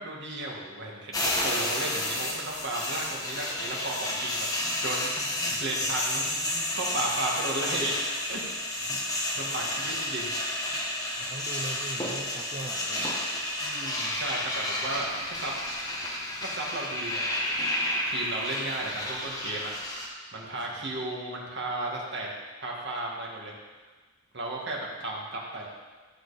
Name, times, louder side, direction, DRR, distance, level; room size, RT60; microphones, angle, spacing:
voice 1, 0.0-4.5 4.8-8.0 8.3-8.4 8.9-9.0 9.4-10.3 13.6-15.5 16.4-17.6 18.1-19.7 20.3-22.3 22.6-23.5 24.3-25.7, right 2 dB, 60° right, -2 dB, 2.2 m, -34 dB
sound 1, 1.1-20.1, left 1 dB, 20° left, 1.6 m, -31 dB
voice 2, 11.2-13.2, right 2 dB, 30° right, 1 dB, 0.6 m, -40 dB
14.0 x 7.8 x 4.3 m, 1.3 s
head